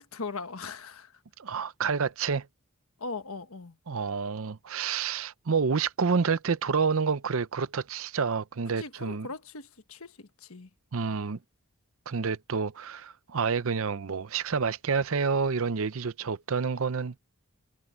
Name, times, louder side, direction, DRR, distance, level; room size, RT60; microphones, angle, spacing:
voice 1, 0.0-1.2 3.0-3.8 8.8-10.7, left 4 dB, 75° left, 1.4 m, -39 dB
voice 2, 1.4-2.5 3.9-9.3 10.9-11.4 12.1-17.2, right 5 dB, 70° right, 0.6 m, -28 dB
head